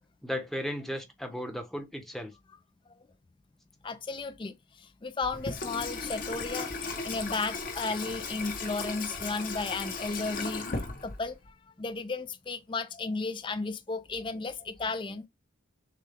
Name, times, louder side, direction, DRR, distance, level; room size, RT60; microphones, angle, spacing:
voice 1, 0.2-2.3, equal, ahead, 0.8 m, -35 dB
voice 2, 3.8-4.5 5.0-10.6 11.0-11.4 11.8-15.3, left 3 dB, 25° left, 0.4 m, -34 dB
Water tap faucet / Sink (filling or washing), 5.2-11.5, left 3 dB, 45° left, 0.9 m, -36 dB
6.6 x 2.3 x 3.5 m
head